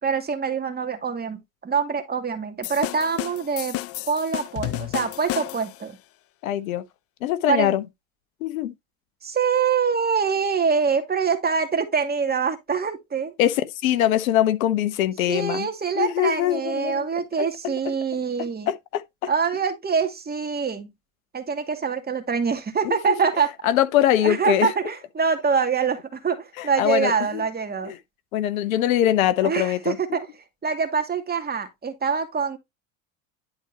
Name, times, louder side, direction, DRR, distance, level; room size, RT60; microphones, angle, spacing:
voice 1, 0.0-3.8 4.1-6.0 7.5-7.7 9.2-13.3 15.3-18.7 19.3-20.9 21.3-23.5 24.2-27.9 29.4-30.3 30.6-32.6, right 6 dB, 25° right, 2.3 m, -25 dB
sound 1, 2.6-5.8, left 16 dB, 35° left, 0.5 m, -31 dB
voice 2, 6.4-6.8 7.2-7.8 8.4-8.7 13.4-15.7 15.9-17.5 18.7-19.3 22.8-23.1 23.6-24.7 26.6-27.4 27.8-28.0 28.3-30.0, left 12 dB, 80° left, 1.1 m, -23 dB
11.0 x 4.3 x 2.9 m
hypercardioid pair, 90°, 41 cm